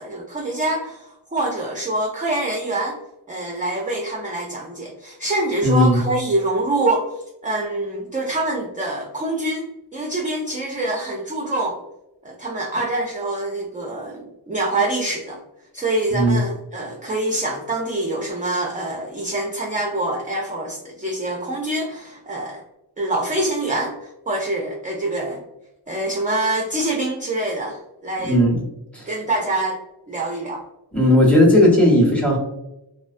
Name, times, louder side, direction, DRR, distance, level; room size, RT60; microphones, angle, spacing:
voice 1, 0.0-3.0 3.3-7.1 7.4-11.8 12.2-15.4 15.7-22.6 23.0-25.4 25.9-28.4 29.1-29.8 30.1-30.6, right 2 dB, 20° right, -1 dB, 0.3 m, -25 dB
voice 2, 5.6-6.0 16.1-16.4 28.2-28.6 28.9-29.1 30.9-32.4, left 1 dB, 5° left, -3 dB, 0.8 m, -15 dB
2.4 x 2.2 x 2.4 m, 0.90 s
wide cardioid pair, 50°, 45 cm